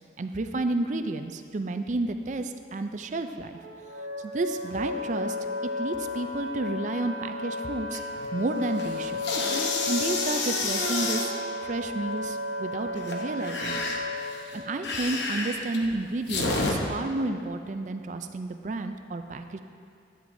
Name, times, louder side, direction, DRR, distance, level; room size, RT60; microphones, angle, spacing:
voice 1, 0.2-3.6 4.2-5.4 5.6-8.0 8.3-9.2 9.9-11.3 11.6-13.8 14.5-19.6, right 2 dB, 40° right, 8 dB, 0.4 m, -31 dB
Wind instrument woodwind instrument, 3.5-14.4, left 2 dB, 75° right, 1.3 m, -34 dB
sound 1, 7.9-8.3 8.6-11.3 13.0-16.7, left 3 dB, 70° left, 0.9 m, -29 dB
11.0 x 8.8 x 2.7 m, 2.3 s
head